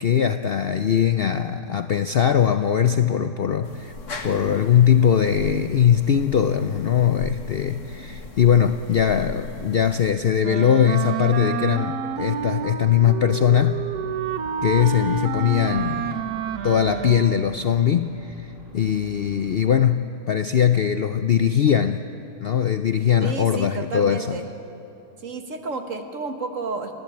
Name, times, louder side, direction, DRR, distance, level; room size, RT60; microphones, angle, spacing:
voice 1, 0.0-3.9 4.2-13.8 14.6-16.2 16.6-22.0 22.4-24.4, left 8 dB, 80° left, 9 dB, 0.5 m, -20 dB
sound 1, 3.6-10.1, left 3 dB, 50° left, 1.8 m, -38 dB
Wind instrument woodwind instrument, 10.4-17.6, right 7 dB, 70° right, 1.4 m, -29 dB
sound 2, 12.1-19.6, right 1 dB, 35° right, 5.7 m, -45 dB
voice 2, 23.2-24.5 25.2-26.9, right 3 dB, 50° right, 6 dB, 1.8 m, -31 dB
29.5 x 12.0 x 8.8 m, 2.9 s
omnidirectional pair, 1.7 m